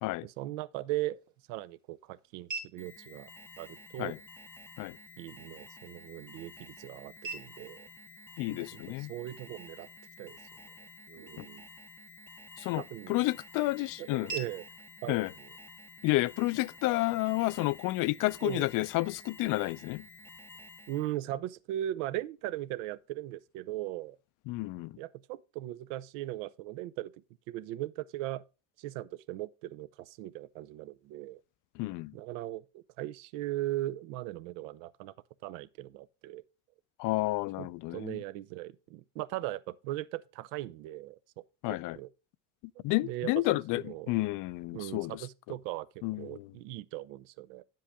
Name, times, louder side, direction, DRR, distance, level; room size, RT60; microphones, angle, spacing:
voice 1, 0.2-1.2 1.5-3.3 3.6-4.1 5.2-7.9 8.5-9.9 10.2-10.4 11.1-11.6 12.7-13.2 14.0-14.6 15.0-15.2 18.4-18.7 20.9-24.2 25.0-27.1 27.5-28.4 28.8-31.4 32.1-35.1 35.4-36.4 37.6-41.2 41.9-42.1 42.8-43.3 43.7-44.1 44.7-45.9 46.2-47.6, right 15 dB, 85° right, 0.6 m, -38 dB
sound 1, 0.7-16.7, right 4 dB, 50° right, 1.8 m, -50 dB
Alarm, 2.8-21.2, left 2 dB, 5° left, 0.5 m, -52 dB
voice 2, 8.4-9.1 11.4-11.5 12.6-14.3 15.1-15.3 16.0-20.0 24.5-25.0 31.8-32.1 37.0-38.2 41.6-42.0 42.8-45.2 46.0-46.5, left 20 dB, 60° left, 0.5 m, -31 dB
10.0 x 7.6 x 3.5 m
supercardioid pair, 95°, 36 cm